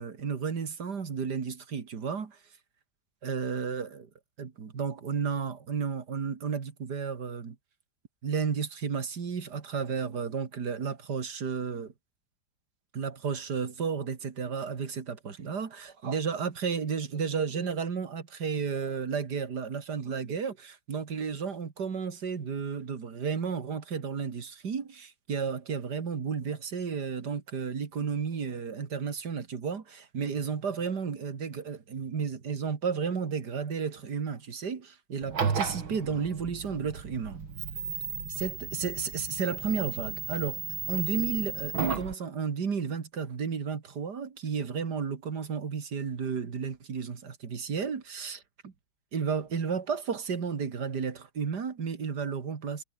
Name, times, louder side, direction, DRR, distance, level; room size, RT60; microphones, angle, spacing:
voice 1, 0.0-2.4 3.2-4.1 4.4-7.6 8.2-11.9 12.9-37.4 38.3-40.6 40.9-48.7 49.1-52.8, right 6 dB, 55° right, 2.6 m, -33 dB
sound 1, 35.2-42.1, right 6 dB, 90° right, 3.4 m, -34 dB
omnidirectional pair, 2.2 m